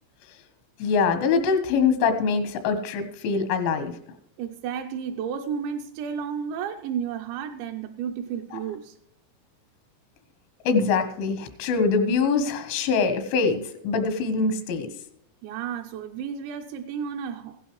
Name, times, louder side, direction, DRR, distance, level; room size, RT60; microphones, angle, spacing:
voice 1, 0.8-4.0 10.7-14.9, left 5 dB, 85° left, 3.6 m, -23 dB
voice 2, 4.4-9.0 15.4-17.6, right 7 dB, 80° right, 2.9 m, -32 dB
16.0 x 11.5 x 3.1 m
omnidirectional pair, 5.4 m